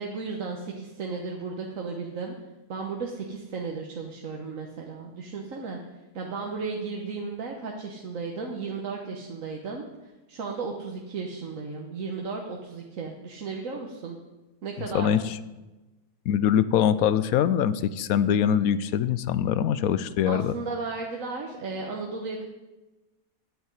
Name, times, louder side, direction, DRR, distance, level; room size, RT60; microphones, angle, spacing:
voice 1, 0.0-2.3 2.7-5.8 6.1-9.8 10.3-14.2 14.6-15.2 20.3-22.4, right 4 dB, 60° right, 1 dB, 1.5 m, -34 dB
voice 2, 14.8-15.4 16.3-20.5, left 9 dB, 75° left, 15 dB, 1.0 m, -23 dB
8.8 x 8.4 x 9.4 m, 1.1 s
omnidirectional pair, 1.6 m